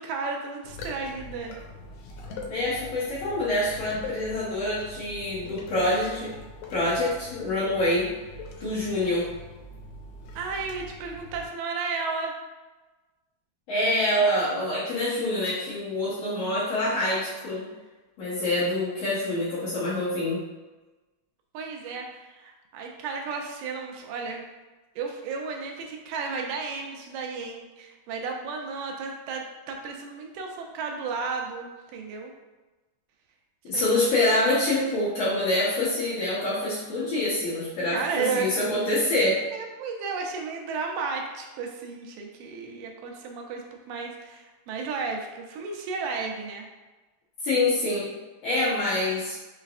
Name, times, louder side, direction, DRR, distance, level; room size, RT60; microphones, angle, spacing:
voice 1, 0.0-1.6 10.4-12.3 14.2-14.7 21.5-24.4 25.0-32.3 33.7-33.9 37.9-38.5 39.5-46.7, right 4 dB, 85° right, 2 dB, 2.3 m, -33 dB
sound 1, 0.6-11.5, left 2 dB, 85° left, 2.4 m, -42 dB
voice 2, 2.5-6.3 6.7-8.1 8.6-9.3 13.7-17.7 18.2-20.4 33.6-39.4 47.4-48.1 48.4-49.3, left 1 dB, 65° left, -9 dB, 1.8 m, -26 dB
5.7 x 3.3 x 2.4 m, 1.2 s
omnidirectional pair, 3.8 m